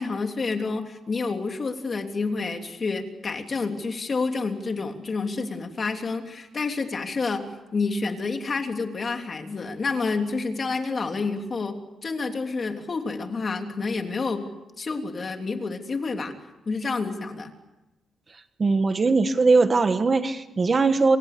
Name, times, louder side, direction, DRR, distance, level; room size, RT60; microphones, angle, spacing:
voice 1, 0.0-7.4 7.7-14.4 14.8-16.3 16.6-17.5, left 4 dB, 35° left, 4 dB, 3.2 m, -29 dB
voice 2, 18.6-21.2, right 3 dB, 30° right, 9 dB, 1.5 m, -20 dB
28.0 x 26.5 x 6.9 m, 1.0 s
cardioid pair, 130°, 0 cm